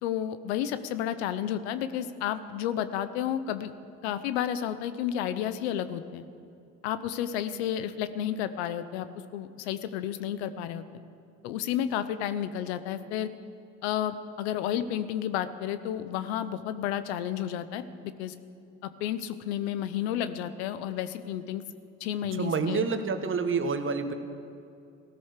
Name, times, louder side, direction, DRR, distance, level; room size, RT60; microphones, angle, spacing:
voice 1, 0.0-3.7 4.0-6.2 6.8-9.1 9.3-10.8 11.4-13.3 13.8-17.8 18.2-18.3 18.8-21.6 22.0-22.8, left 10 dB, 90° left, 12 dB, 0.8 m, -31 dB
voice 2, 22.3-24.1, right 5 dB, 40° right, 8 dB, 1.5 m, -28 dB
15.5 x 13.0 x 6.6 m, 2.6 s
supercardioid pair, 65°, 31 cm